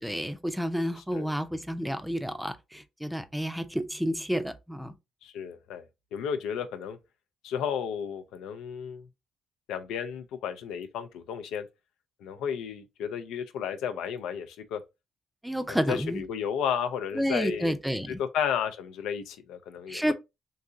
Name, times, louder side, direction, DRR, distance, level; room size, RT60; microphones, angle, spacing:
voice 1, 0.0-4.9 15.4-16.2 17.1-18.2 19.9-20.1, equal, 5° right, 0.5 m, -30 dB
voice 2, 5.2-5.8 6.1-7.0 7.4-9.1 9.7-11.7 12.2-14.8 15.7-17.7 18.1-20.1, left 8 dB, 90° left, 0.4 m, -33 dB
3.7 x 2.8 x 2.6 m
cardioid pair, 90°, 0 cm